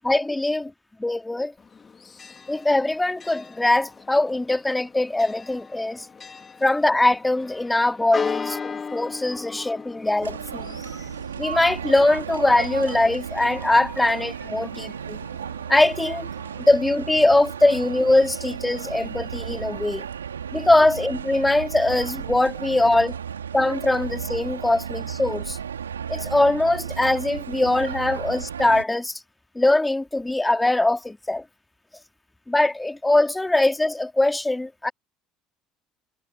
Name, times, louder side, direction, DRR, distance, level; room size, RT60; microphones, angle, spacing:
voice 1, 0.1-0.6 1.0-1.5 2.5-6.1 6.6-8.6 8.9-10.8 11.4-15.2 15.7-16.3 16.6-20.1 20.5-23.1 23.5-25.6 26.1-29.2 29.5-31.4 32.5-34.9, left 2 dB, 10° left, 2.8 m, -21 dB
Church bell, 1.6-16.7, left 5 dB, 30° left, 3.4 m, -38 dB
sound 1, 10.2-28.8, right 8 dB, 85° right, 2.7 m, -34 dB
figure-of-eight pair, 60°, 0 cm